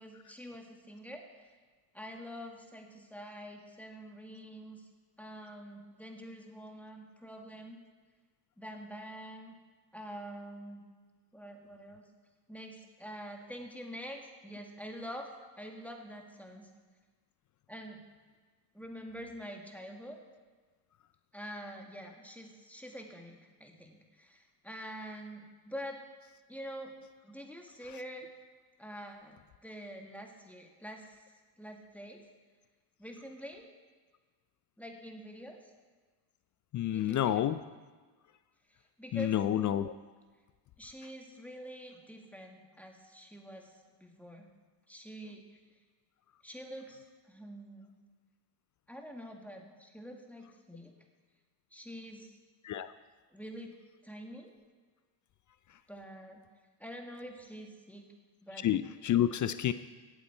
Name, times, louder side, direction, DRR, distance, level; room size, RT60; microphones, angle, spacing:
voice 1, 0.0-1.5 1.9-4.9 5.2-7.8 8.6-9.5 9.9-10.8 11.3-12.1 12.5-16.7 17.7-18.0 18.7-20.2 21.3-26.0 26.5-26.9 27.2-28.3 28.8-31.2 31.6-32.2 33.0-33.7 34.8-35.6 36.9-37.5 39.0-39.3 40.8-44.5 44.9-45.4 46.4-47.0 47.3-48.0 48.9-50.9 51.7-52.4 53.3-53.7 54.0-54.5 55.9-56.4 56.8-58.0 58.4-58.9, equal, 5° left, 2 dB, 1.7 m, -46 dB
voice 2, 36.7-37.6 39.1-39.9 52.6-52.9 58.6-59.7, left 11 dB, 40° left, 13 dB, 0.4 m, -29 dB
16.0 x 8.4 x 4.4 m, 1.4 s
supercardioid pair, 85°, 50 cm